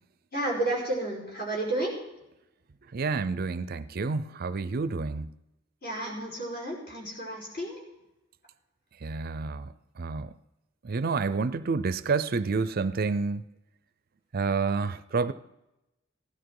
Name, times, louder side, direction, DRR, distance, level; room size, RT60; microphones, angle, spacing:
voice 1, 0.3-2.0 5.8-7.8, right 1 dB, 50° left, -2 dB, 5.3 m, -31 dB
voice 2, 2.9-5.3 9.0-9.7 10.0-10.3 10.8-13.4 14.3-15.3, right 4 dB, 50° right, 15 dB, 0.5 m, -29 dB
16.0 x 11.5 x 4.8 m, 0.92 s
head